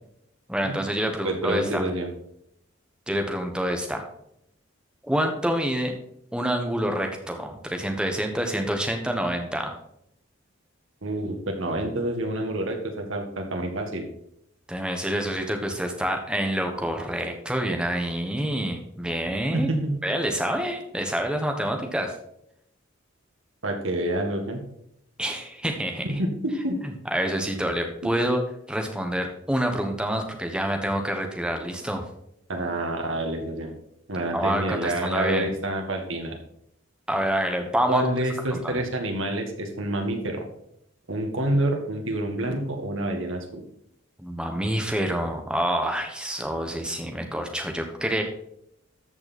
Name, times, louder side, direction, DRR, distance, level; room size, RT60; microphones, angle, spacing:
voice 1, 0.5-1.8 3.1-4.0 5.0-5.9 6.3-9.7 14.7-19.7 20.0-22.1 25.2-26.1 27.1-28.4 28.7-32.0 34.3-35.5 37.1-38.0 38.5-38.8 44.2-48.2, equal, 5° right, 3 dB, 1.2 m, -27 dB
voice 2, 1.2-2.1 11.0-14.1 19.5-20.0 23.6-24.6 26.0-26.8 28.0-28.1 32.5-33.8 34.1-36.4 37.9-40.4 41.1-43.7, right 1 dB, 75° right, 3 dB, 1.9 m, -28 dB
13.5 x 5.8 x 4.4 m, 0.75 s
head